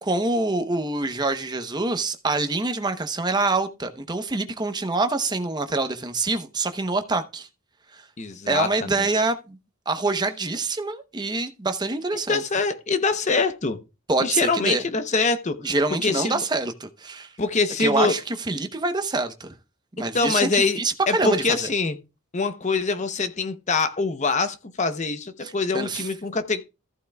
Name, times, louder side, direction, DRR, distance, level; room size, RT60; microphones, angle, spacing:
voice 1, 0.0-7.5 7.9-8.0 8.5-9.6 9.9-12.4 14.1-14.8 15.6-17.3 17.8-19.5 20.0-21.7 25.4-26.1, right 3 dB, 20° right, 0.8 m, -25 dB
voice 2, 8.2-9.1 12.3-13.8 14.2-15.7 16.0-16.4 17.4-18.1 20.1-20.8 21.1-22.0 22.3-26.6, left 4 dB, 35° left, 0.7 m, -24 dB
14.5 x 8.2 x 2.3 m
head